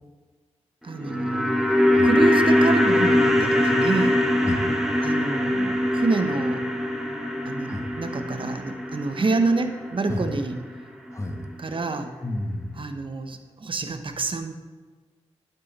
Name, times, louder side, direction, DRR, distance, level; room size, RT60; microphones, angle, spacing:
sound 1, 0.8-11.1 11.4-11.5, left 1 dB, 5° right, 1.8 m, -23 dB
voice 1, 0.8-1.5 2.0-4.2 5.0-6.6 7.5-10.6 11.6-12.1 12.8-14.5, right 3 dB, 50° right, 7 dB, 1.1 m, -27 dB
voice 2, 4.4-4.8 7.7-7.9 10.1-10.3 11.1-11.4 12.2-12.8, left 1 dB, 25° left, 5 dB, 1.5 m, -30 dB
11.0 x 8.3 x 4.3 m, 1.4 s
cardioid pair, 55°, 11 cm